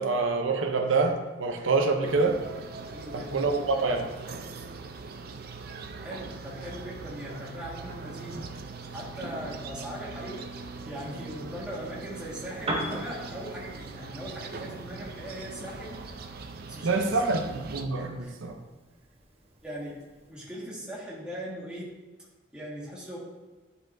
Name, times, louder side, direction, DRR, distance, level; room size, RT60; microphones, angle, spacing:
voice 1, 0.0-2.4 3.1-4.1 16.8-18.6, right 3 dB, 85° right, 4 dB, 0.7 m, -26 dB
sound 1, 2.0-17.9, right 4 dB, 50° right, 0.5 m, -41 dB
voice 2, 2.9-3.5 6.0-8.5 8.9-10.5 10.8-16.0 16.7-17.2 17.9-18.3 19.6-20.0 20.3-21.9 22.5-23.2, equal, 5° right, -7 dB, 1.6 m, -39 dB
Piano, 12.5-20.4, right 1 dB, 30° right, 0.9 m, -42 dB
10.5 x 4.2 x 2.6 m, 1.3 s
head